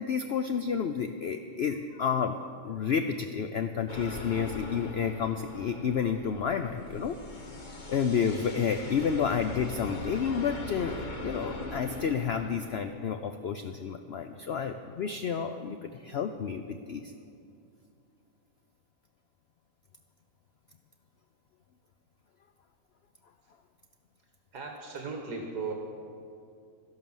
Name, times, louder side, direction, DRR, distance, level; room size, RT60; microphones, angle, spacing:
voice 1, 0.0-2.3 2.6-7.2 7.9-17.1, left 7 dB, 80° left, 8 dB, 0.5 m, -30 dB
sound 1, 3.9-12.7, left 2 dB, 30° left, 1.1 m, -41 dB
voice 2, 24.5-25.7, right 4 dB, 75° right, 1 dB, 2.0 m, -37 dB
13.0 x 11.5 x 7.2 m, 2.5 s
omnidirectional pair, 1.8 m